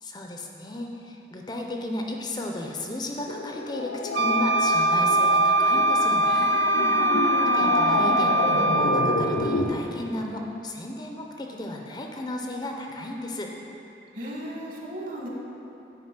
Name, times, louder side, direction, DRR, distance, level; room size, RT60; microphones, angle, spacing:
voice 1, 0.0-6.5 7.4-13.5, left 1 dB, 25° left, 1 dB, 0.5 m, -34 dB
sound 1, 3.2-9.8, left 2 dB, 85° left, 0.7 m, -28 dB
Wind instrument woodwind instrument, 4.1-9.3, right 2 dB, 85° right, 0.4 m, -22 dB
voice 2, 6.7-7.2 14.1-15.3, equal, 50° right, -3 dB, 1.5 m, -35 dB
9.4 x 4.9 x 5.9 m, 2.9 s
head